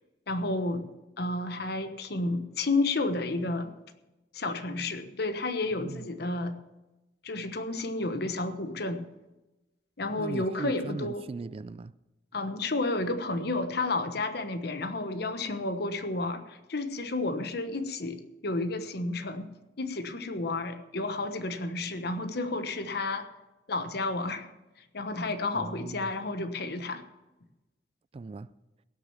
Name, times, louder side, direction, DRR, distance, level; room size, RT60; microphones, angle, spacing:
voice 1, 0.3-0.9 1.2-3.7 4.3-6.5 7.2-9.0 10.0-11.2 12.3-19.5 19.8-23.3 23.7-24.5 24.9-27.0, left 2 dB, 65° left, 1.1 m, -31 dB
voice 2, 10.2-11.9 25.5-26.1 28.1-28.5, right 3 dB, 35° right, 0.3 m, -39 dB
16.5 x 6.5 x 7.2 m
head